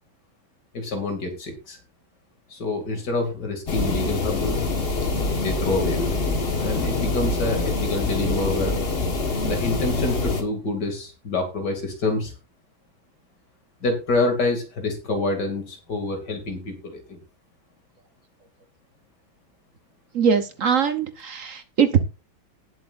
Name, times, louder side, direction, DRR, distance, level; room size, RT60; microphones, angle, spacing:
voice 1, 0.7-1.8 2.5-4.6 5.4-8.7 9.4-12.3 13.8-17.2, left 2 dB, 55° left, 4 dB, 3.1 m, -27 dB
sound 1, 3.7-10.4, left 3 dB, 30° left, 1.4 m, -25 dB
voice 2, 20.1-22.0, right 7 dB, 55° right, 10 dB, 0.9 m, -21 dB
18.5 x 7.6 x 2.5 m, 0.31 s
omnidirectional pair, 2.3 m